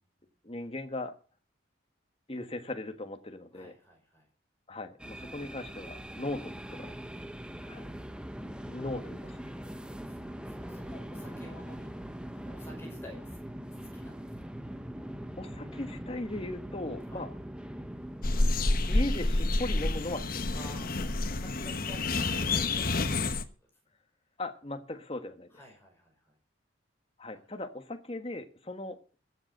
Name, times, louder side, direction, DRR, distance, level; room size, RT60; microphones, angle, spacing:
voice 1, 0.4-1.2 2.3-3.7 4.7-6.9 7.7-7.9 8.7-9.4 15.4-17.3 18.9-20.5 24.4-25.5 27.2-29.2, left 1 dB, 30° left, 7 dB, 1.4 m, -38 dB
voice 2, 3.5-4.3 7.6-7.8 9.5-12.0 12.3-13.4 13.9-14.5 17.1-17.3 20.5-23.7 25.5-26.4 27.3-27.5, left 1 dB, 10° left, 0 dB, 5.5 m, -52 dB
sound 1, 5.0-21.3, equal, 5° right, 0.9 m, -42 dB
sound 2, 18.2-23.4, left 2 dB, 45° left, 1.1 m, -28 dB
14.5 x 7.9 x 7.9 m, 0.38 s
head